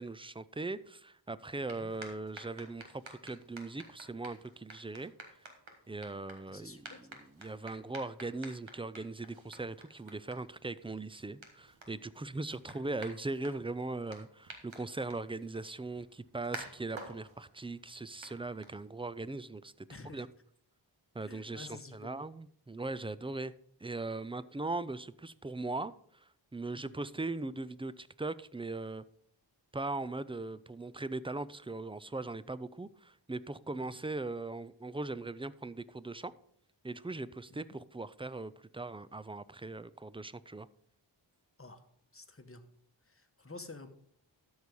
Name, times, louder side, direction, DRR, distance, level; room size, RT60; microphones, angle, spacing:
voice 1, 0.0-5.1 5.9-19.7 20.1-20.3 21.1-23.5 23.8-29.0 29.7-36.3 36.8-40.7, right 2 dB, 15° right, 17 dB, 0.3 m, -40 dB
sound 1, 1.4-19.2, right 2 dB, 85° right, 1.7 m, -52 dB
voice 2, 1.7-2.0 6.5-7.2 12.5-12.8 16.6-16.7 19.9-20.3 21.2-22.2 26.8-27.1 37.5-37.7 41.6-41.8 42.1-42.6 43.1-43.9, left 3 dB, 30° left, 8 dB, 1.1 m, -51 dB
12.5 x 4.8 x 5.3 m, 0.65 s
wide cardioid pair, 55°, 45 cm